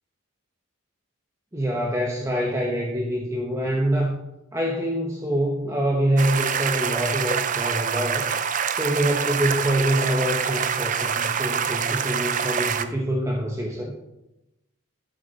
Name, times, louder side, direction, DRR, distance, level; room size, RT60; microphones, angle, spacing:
voice 1, 1.5-4.2 4.5-8.3 8.7-13.9, right 1 dB, 15° right, -1 dB, 1.0 m, -25 dB
sound 1, 6.2-12.8, right 7 dB, 35° right, 0.5 m, -26 dB
12.0 x 7.7 x 4.1 m, 0.93 s
head